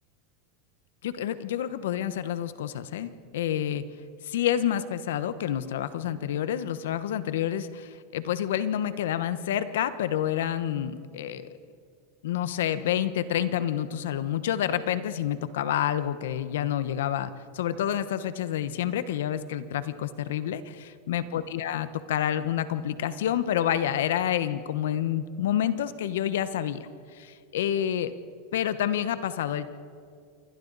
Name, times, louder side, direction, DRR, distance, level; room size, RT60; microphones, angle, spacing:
voice 1, 1.0-3.8 4.2-11.5 12.2-26.9 27.1-28.1 28.5-29.7, left 10 dB, 80° left, 13 dB, 1.1 m, -28 dB
27.5 x 23.0 x 4.1 m, 2.3 s
supercardioid pair, 120°, 0 cm